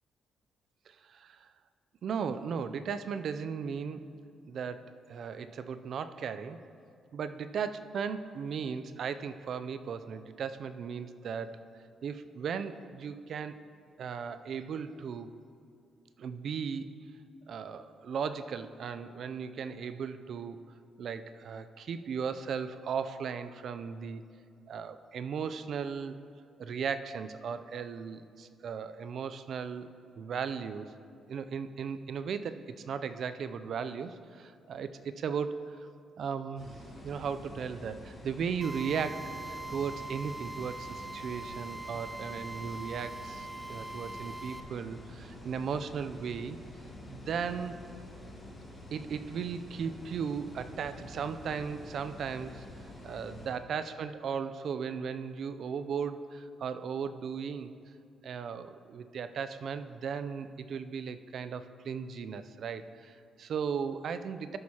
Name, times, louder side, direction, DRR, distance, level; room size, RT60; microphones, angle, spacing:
voice 1, 0.9-1.5 2.0-4.1 4.4-6.6 7.1-11.6 12.0-13.6 14.0-15.3 16.2-17.0 17.5-20.6 21.0-24.2 24.7-26.2 26.6-29.9 30.2-30.9 31.3-35.6 36.2-46.6 47.1-47.8 48.9-52.6 53.0-57.7 58.2-64.6, right 6 dB, 60° right, 12 dB, 0.4 m, -36 dB
sound 1, 36.6-53.5, left 1 dB, 25° left, 2.2 m, -48 dB
Drill, 38.6-44.6, right 2 dB, 15° right, 0.6 m, -42 dB
13.5 x 6.3 x 2.9 m, 2.4 s
cardioid pair, 90°, 0 cm